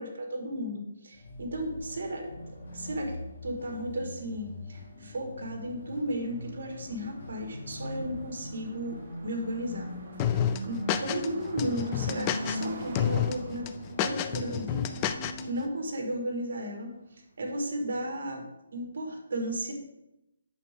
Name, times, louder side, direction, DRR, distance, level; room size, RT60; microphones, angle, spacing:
voice 1, 0.0-2.3 2.7-3.1 3.4-9.9 10.6-13.7 14.0-14.8 15.4-16.9 17.4-18.4 18.7-19.7, right 1 dB, 60° right, 2 dB, 1.9 m, -34 dB
sound 1, 1.1-15.5, left 1 dB, 60° left, 2.6 m, -41 dB
Car passing by, 5.2-17.2, right 3 dB, 35° right, 1.0 m, -48 dB
sound 2, 10.2-11.3 11.6-12.7 13.0-13.3 13.7-15.4, left 10 dB, 15° left, 0.3 m, -29 dB
8.3 x 6.6 x 3.7 m, 0.89 s
hypercardioid pair, 170°, 0 cm